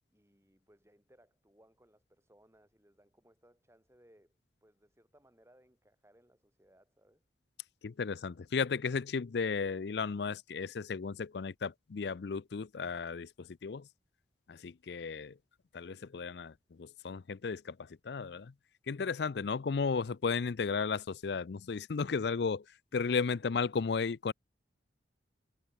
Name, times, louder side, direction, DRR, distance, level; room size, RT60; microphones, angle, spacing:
voice 1, 0.1-7.2, right 1 dB, 15° right, 3.5 m, -66 dB
voice 2, 7.8-13.8 14.5-15.3 15.7-16.5 16.8-17.7 18.0-18.5 18.9-22.6 22.9-24.3, left 5 dB, 65° left, 0.5 m, -34 dB
head